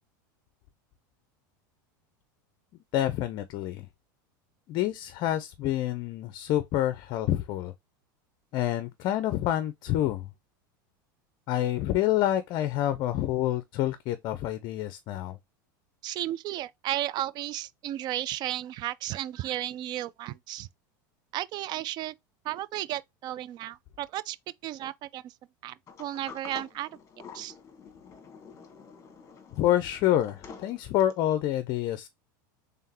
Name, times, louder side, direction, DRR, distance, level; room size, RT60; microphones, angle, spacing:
voice 1, 2.9-3.9 4.7-7.7 8.5-10.3 11.5-15.4 29.5-32.1, left 13 dB, 50° left, 0.5 m, -27 dB
voice 2, 16.0-20.7 21.3-22.1 22.4-24.4 24.6-25.3 25.6-26.9 27.3-27.5, right 13 dB, 40° right, 0.3 m, -34 dB
Sliding door, 25.9-31.3, left 5 dB, 30° left, 1.3 m, -48 dB
3.7 x 3.5 x 2.8 m
supercardioid pair, 110°, 11 cm